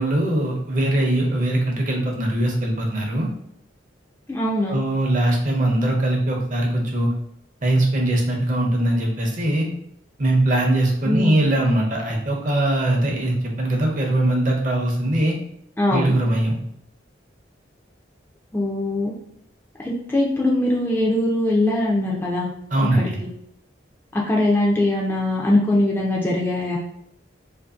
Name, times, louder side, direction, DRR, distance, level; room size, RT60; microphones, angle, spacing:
voice 1, 0.0-3.3 4.7-7.1 7.6-9.7 10.2-15.4 15.9-16.6 22.7-23.2, right 1 dB, 40° right, 0 dB, 0.6 m, -21 dB
voice 2, 4.3-4.8 11.0-11.3 15.8-16.1 18.5-19.1 19.8-22.5 23.0-23.3 24.1-26.8, left 1 dB, 10° left, -3 dB, 0.3 m, -21 dB
2.6 x 2.5 x 2.4 m, 0.72 s
head